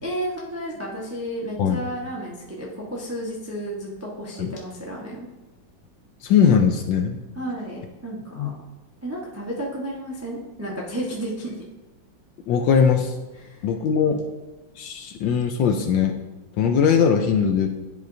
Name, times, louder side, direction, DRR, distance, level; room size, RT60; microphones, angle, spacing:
voice 1, 0.0-5.3 7.3-8.5 9.0-11.6 13.4-13.6, right 1 dB, 20° right, -3 dB, 0.3 m, -32 dB
voice 2, 6.2-7.2 8.4-8.5 12.5-13.1 13.6-14.2 14.8-16.1 16.6-17.7, left 7 dB, 75° left, 5 dB, 1.1 m, -20 dB
10.5 x 4.9 x 2.7 m, 1.1 s
omnidirectional pair, 2.3 m